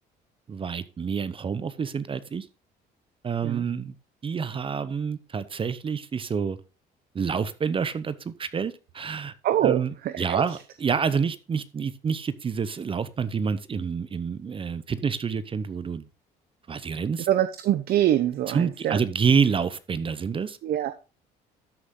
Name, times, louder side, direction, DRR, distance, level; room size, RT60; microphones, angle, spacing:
voice 1, 0.5-2.5 3.2-3.9 4.2-6.6 7.1-9.3 9.6-16.0 16.7-17.3 18.5-20.6, right 6 dB, 30° right, 0.8 m, -28 dB
voice 2, 9.4-9.8 10.1-10.4 17.3-19.0 20.6-20.9, right 12 dB, 65° right, 0.8 m, -24 dB
13.0 x 6.4 x 3.8 m
cardioid pair, 110°, 17 cm